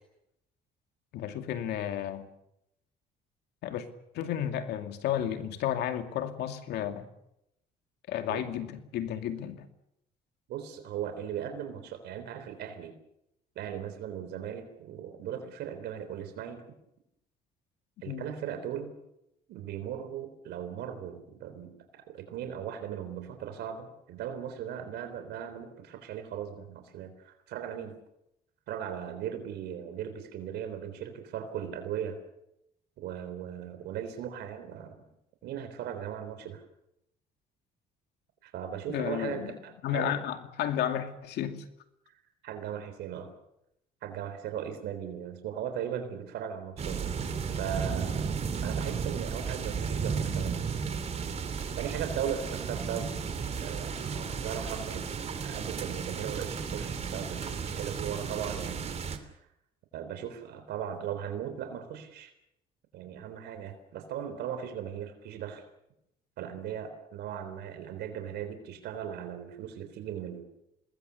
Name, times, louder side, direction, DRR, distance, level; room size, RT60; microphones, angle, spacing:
voice 1, 1.1-2.3 3.6-3.9 4.1-7.1 8.1-9.7 18.0-18.2 38.9-39.6 39.8-41.6, left 10 dB, 75° left, 7 dB, 2.4 m, -32 dB
voice 2, 10.5-12.9 13.6-16.6 18.0-18.9 19.5-28.0 28.7-32.2 33.0-35.0 35.4-36.6 38.4-40.2 42.4-43.3 44.0-47.2 47.5-50.7 51.8-53.1 53.6-55.1 55.4-59.2 59.9-62.3 62.9-65.6 66.4-70.4, right 9 dB, 80° right, 8 dB, 3.8 m, -38 dB
sound 1, 46.8-59.2, right 6 dB, 40° right, 2.8 m, -34 dB
26.0 x 20.5 x 7.1 m, 0.83 s
cardioid pair, 110°, 17 cm